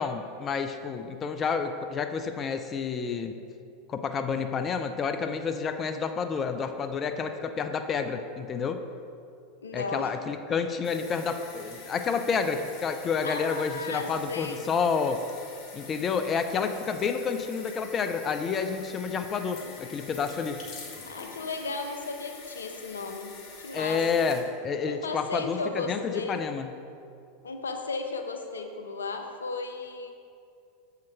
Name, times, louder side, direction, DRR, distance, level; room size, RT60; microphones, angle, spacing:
voice 1, 0.0-3.4 3.9-8.8 9.7-15.2 15.7-20.6 23.7-26.7, left 5 dB, 30° left, 8 dB, 0.5 m, -29 dB
voice 2, 9.6-10.1 13.2-14.6 21.0-24.0 24.8-26.4 27.4-30.1, left 3 dB, 90° left, 6 dB, 0.6 m, -35 dB
sound 1, 10.8-24.4, left 4 dB, 50° left, 1.4 m, -46 dB
7.5 x 5.8 x 4.5 m, 2.4 s
hypercardioid pair, 90°, 0 cm